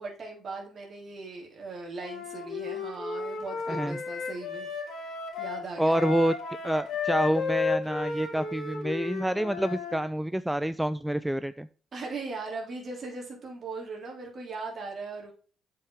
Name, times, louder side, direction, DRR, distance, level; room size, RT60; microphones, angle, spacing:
voice 1, 0.0-4.7 5.0-6.3 11.9-15.3, right 3 dB, 50° right, -1 dB, 3.6 m, -39 dB
Wind instrument woodwind instrument, 2.0-10.0, left 5 dB, 65° left, 2.5 m, -33 dB
voice 2, 3.7-4.0 5.8-6.3 6.6-11.7, right 1 dB, 5° right, 14 dB, 0.4 m, -27 dB
7.6 x 5.7 x 3.5 m, 0.40 s
supercardioid pair, 60°, 0 cm